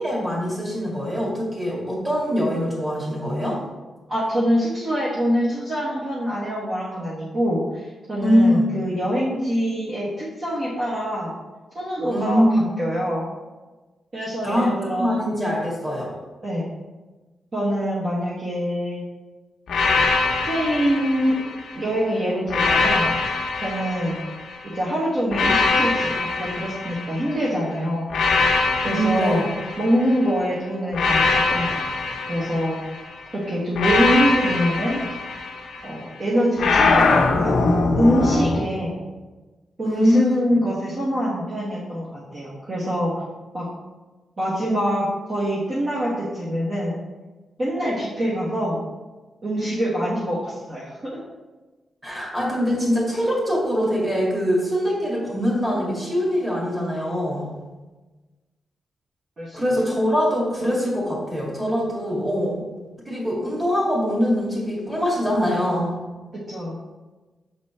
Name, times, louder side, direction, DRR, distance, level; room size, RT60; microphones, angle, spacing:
voice 1, 0.0-3.6 8.2-8.7 12.1-12.7 14.4-16.2 28.8-29.5 39.8-40.6 52.0-57.5 59.5-62.6 63.1-65.9, equal, 15° right, -4 dB, 2.1 m, -23 dB
voice 2, 4.1-11.3 11.7-13.2 14.1-15.2 16.4-16.7 17.5-19.0 20.4-21.4 21.7-23.1 23.6-24.2 24.6-28.1 28.8-29.4 29.8-32.8 33.3-35.0 35.8-37.6 37.9-39.0 39.8-43.1 43.5-43.7 44.4-46.9 47.6-48.8 49.4-51.2 59.4-59.6 66.3-66.8, equal, 35° right, -7 dB, 1.3 m, -24 dB
sound 1, 19.7-21.8 22.5-24.6 25.3-27.5 28.1-30.3 30.9-33.1 33.8-35.9 36.6-38.6, left 3 dB, 80° left, 0.7 m, -22 dB
6.6 x 4.1 x 4.3 m, 1.2 s
wide cardioid pair, 145°, 0 cm